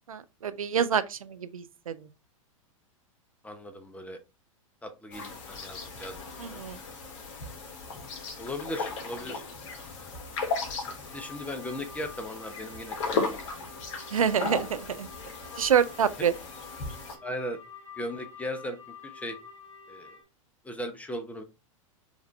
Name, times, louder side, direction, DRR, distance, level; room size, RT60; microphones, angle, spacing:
voice 1, 0.1-2.1 6.4-6.8 14.1-15.1 15.6-16.3, right 8 dB, 85° right, 0.5 m, -27 dB
voice 2, 3.4-4.2 4.8-6.6 8.4-9.4 11.1-13.4 17.2-17.6 18.0-18.8 19.0-19.4 19.9-20.1 20.6-21.4, left 1 dB, 10° left, 0.8 m, -37 dB
sound 1, 5.1-17.2, left 4 dB, 60° left, 1.3 m, -36 dB
sound 2, 11.0-20.2, left 4 dB, 75° left, 1.7 m, -49 dB
5.0 x 2.6 x 3.2 m
hypercardioid pair, 100°, 17 cm